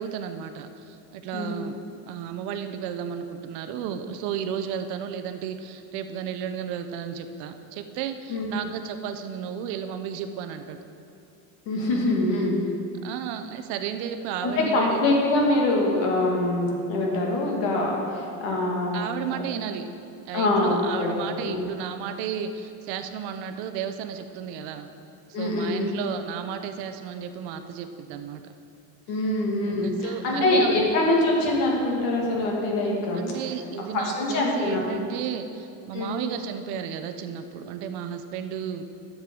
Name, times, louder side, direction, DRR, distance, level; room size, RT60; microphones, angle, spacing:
voice 1, 0.0-1.8 2.1-10.8 13.0-15.2 18.9-19.9 20.3-24.9 25.3-28.5 29.6-30.9 33.1-38.9, right 8 dB, 55° right, 8 dB, 0.6 m, -33 dB
voice 2, 11.7-12.6 14.4-19.0 19.3-19.4 20.3-21.6 25.3-25.9 29.1-33.2 33.9-34.9 35.9-36.2, left 2 dB, 65° left, -1 dB, 2.2 m, -24 dB
13.0 x 7.4 x 3.8 m, 2.7 s
cardioid pair, 155°, 48 cm